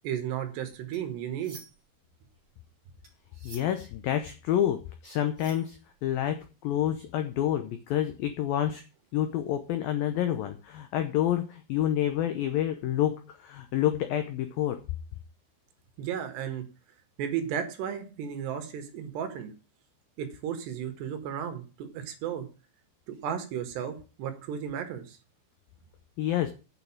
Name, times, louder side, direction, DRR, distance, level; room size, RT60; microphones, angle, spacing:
voice 1, 0.0-1.6 16.0-16.6 17.2-19.5 20.2-22.5 23.1-25.2, right 9 dB, 65° right, 7 dB, 3.6 m, -34 dB
sound 1, 0.9-2.0 2.3-6.3, right 3 dB, 25° right, 1.8 m, -52 dB
voice 2, 3.4-5.8 6.0-8.8 9.1-14.8 26.2-26.5, left 11 dB, 85° left, 8 dB, 2.0 m, -28 dB
8.9 x 6.8 x 8.6 m, 0.34 s
omnidirectional pair, 5.5 m